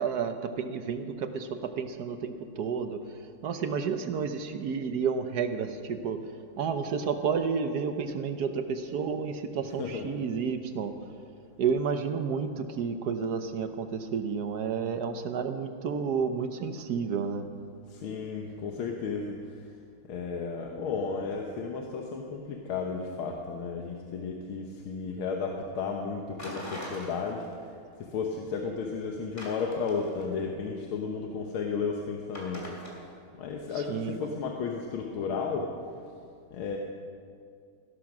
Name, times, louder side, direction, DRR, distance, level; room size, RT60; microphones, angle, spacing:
voice 1, 0.0-6.2 6.6-10.9 11.6-17.5 33.8-34.2, right 6 dB, 60° right, 8 dB, 1.2 m, -31 dB
voice 2, 9.6-10.1 17.9-19.4 20.1-27.4 28.1-32.7 33.4-35.7 36.5-36.8, left 5 dB, 85° left, 1 dB, 1.9 m, -33 dB
sound 1, 26.4-27.7 28.0-28.1 29.4-30.4 32.3-32.9, left 1 dB, 20° left, 3.0 m, -41 dB
17.0 x 11.5 x 6.1 m, 2.3 s
omnidirectional pair, 2.3 m